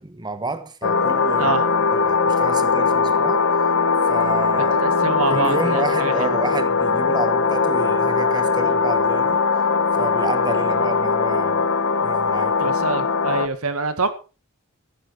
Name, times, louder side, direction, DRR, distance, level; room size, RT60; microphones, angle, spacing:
voice 1, 0.0-1.6 1.9-3.4 4.1-4.9 5.3-9.4 10.0-11.6 12.0-12.7, right 2 dB, 20° right, 1.2 m, -30 dB
sound 1, 0.8-13.5, left 5 dB, 60° left, 1.1 m, -20 dB
voice 2, 4.6-6.4 12.6-14.1, right 4 dB, 85° right, 1.9 m, -25 dB
15.0 x 11.0 x 4.4 m
head